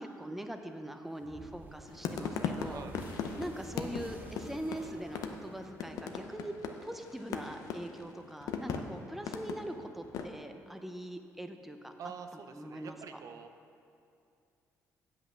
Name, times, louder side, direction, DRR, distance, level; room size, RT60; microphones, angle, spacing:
voice 1, 0.0-2.8 3.4-6.5 6.8-11.9 12.5-13.0, right 1 dB, 5° right, 5 dB, 0.6 m, -42 dB
sound 1, 1.2-6.4, right 1 dB, 30° right, 1.2 m, -51 dB
sound 2, 1.9-10.3, left 6 dB, 80° left, 0.6 m, -38 dB
voice 2, 2.6-3.0 12.0-13.5, right 6 dB, 65° right, 7 dB, 0.6 m, -46 dB
7.9 x 6.0 x 6.1 m, 2.5 s
cardioid pair, 80°, 6 cm